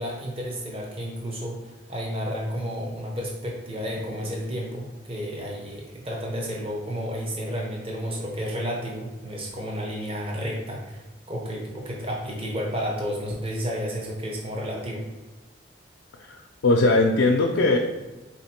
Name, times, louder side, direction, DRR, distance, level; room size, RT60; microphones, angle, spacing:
voice 1, 0.0-15.0, equal, 30° right, -1 dB, 0.7 m, -31 dB
voice 2, 16.2-17.8, left 2 dB, 80° left, 1 dB, 0.4 m, -20 dB
3.8 x 2.9 x 4.3 m, 1.1 s
head